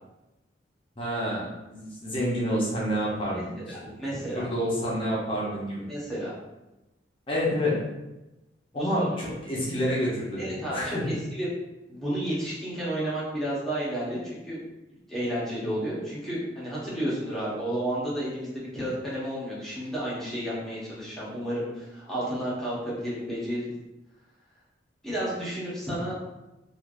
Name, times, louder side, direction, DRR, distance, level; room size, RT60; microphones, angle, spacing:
voice 1, 1.0-3.9 4.3-5.9 7.3-7.8 8.7-11.1, equal, 30° left, -6 dB, 0.7 m, -28 dB
voice 2, 3.3-4.4 5.9-6.3 8.7-9.1 10.4-11.5 11.9-14.6 15.1-23.7 25.0-26.1, right 1 dB, ahead, -9 dB, 1.0 m, -32 dB
3.2 x 2.5 x 2.5 m, 0.99 s
head